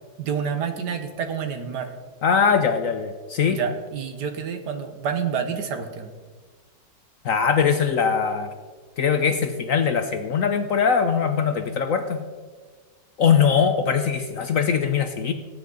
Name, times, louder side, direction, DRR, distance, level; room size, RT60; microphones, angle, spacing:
voice 1, 0.2-1.9 3.5-6.1, right 7 dB, 70° right, 7 dB, 1.7 m, -28 dB
voice 2, 2.2-3.6 7.2-8.5 9.0-12.2 13.2-15.3, left 6 dB, 60° left, 8 dB, 0.9 m, -21 dB
18.0 x 9.1 x 3.9 m, 1.5 s
omnidirectional pair, 2.0 m